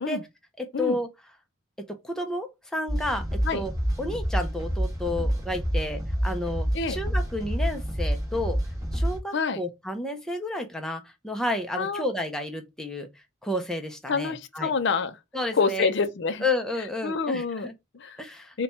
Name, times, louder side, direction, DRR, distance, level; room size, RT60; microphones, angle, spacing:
voice 1, 0.6-1.1 1.9-3.7 4.0-8.6 8.9-13.1 13.4-14.7 15.3-15.9 16.4-17.7 18.2-18.5, left 1 dB, 5° left, 0.5 m, -31 dB
sound 1, 2.9-9.2, equal, 15° right, 1.1 m, -28 dB
voice 2, 14.1-15.2 15.5-16.4 17.0-18.2 18.5-18.6, left 5 dB, 55° left, 0.5 m, -27 dB
4.2 x 2.2 x 4.2 m
head